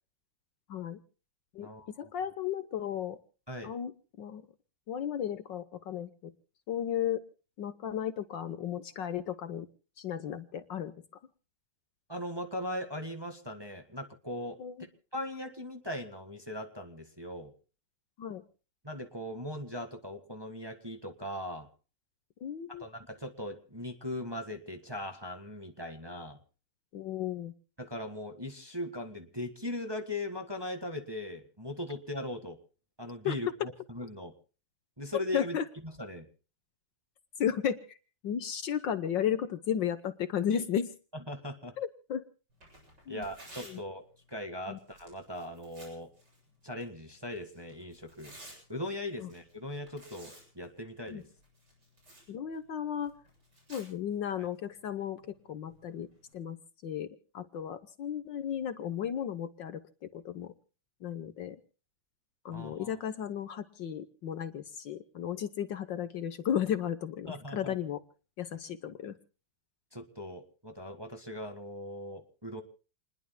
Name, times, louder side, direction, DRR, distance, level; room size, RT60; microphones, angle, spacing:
voice 1, 1.5-3.2 3.6-4.5 4.9-6.3 6.7-7.2 7.6-9.7 10.0-10.9 14.6-14.9 18.2-18.4 22.4-22.9 26.9-27.5 33.2-33.3 35.3-35.6 37.4-38.0 38.2-40.9 41.8-42.2 43.1-43.2 43.6-43.8 44.7-44.8 49.2-49.3 51.1-51.2 52.3-53.1 53.7-56.1 56.3-56.6 56.8-60.5 61.0-61.6 62.4-68.0 68.4-69.1, left 9 dB, 65° left, 12 dB, 1.5 m, -34 dB
voice 2, 12.1-14.6 15.1-17.5 18.8-21.7 22.7-26.4 27.8-32.6 33.0-33.5 33.9-34.3 35.0-35.6 36.0-36.3 41.3-41.7 43.1-46.1 46.6-48.3 48.7-51.2 62.5-62.9 67.3-67.7 69.9-72.6, left 1 dB, 15° right, 6 dB, 1.5 m, -39 dB
Tearing, 42.5-56.3, right 1 dB, 50° right, 8.6 m, -57 dB
29.0 x 21.0 x 2.2 m, 0.37 s
omnidirectional pair, 2.4 m